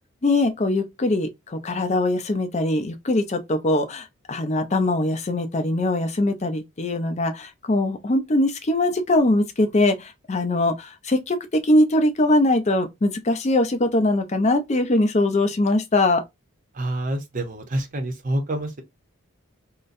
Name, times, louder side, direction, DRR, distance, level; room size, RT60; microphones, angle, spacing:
voice 1, 0.2-16.2, left 1 dB, 30° left, 0.5 m, -22 dB
voice 2, 16.7-18.8, right 1 dB, 35° right, 0.7 m, -27 dB
3.9 x 2.1 x 2.5 m
head